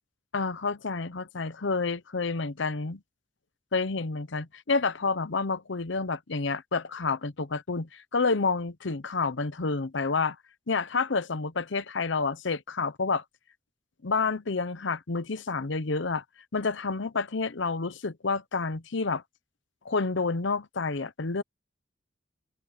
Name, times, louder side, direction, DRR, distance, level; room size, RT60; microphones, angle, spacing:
voice 1, 0.3-3.0 3.7-10.4 10.7-13.2 14.0-16.2 16.5-19.2 19.8-21.4, left 4 dB, 65° left, 0.8 m, -29 dB
open air
head